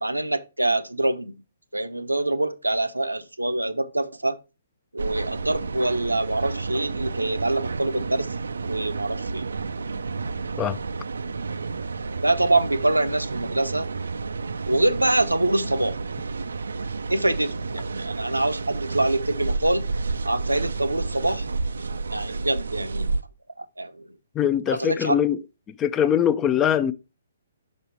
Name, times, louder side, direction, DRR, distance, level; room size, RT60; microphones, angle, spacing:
voice 1, 0.0-1.4 1.7-4.4 4.9-8.3 8.7-9.5 12.2-13.9 14.7-16.0 17.1-19.9 20.2-21.5 22.1-23.1 23.6-24.1 24.7-25.2, right 2 dB, 85° right, 0.8 m, -25 dB
sound 1, 5.0-23.2, right 4 dB, 70° right, 0.4 m, -31 dB
voice 2, 24.3-25.4 25.7-26.9, left 9 dB, 20° left, 0.4 m, -22 dB
6.1 x 5.4 x 4.5 m
figure-of-eight pair, 130°, 0 cm